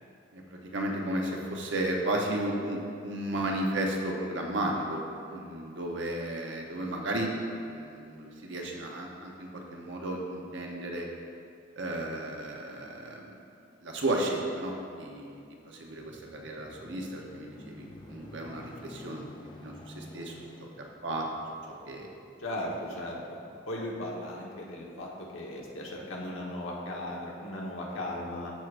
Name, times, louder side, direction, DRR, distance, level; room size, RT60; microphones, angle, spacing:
voice 1, 0.3-7.3 7.6-11.1 11.8-13.4 13.8-20.3 21.0-21.3 21.8-22.1, right 1 dB, 70° right, 0 dB, 0.9 m, -34 dB
sound 1, 15.6-24.2 24.8-24.9, left 1 dB, 20° left, 0.5 m, -50 dB
voice 2, 22.4-23.2 23.7-28.5, left 1 dB, 90° left, -3 dB, 1.3 m, -37 dB
13.5 x 4.8 x 2.5 m, 2.5 s
head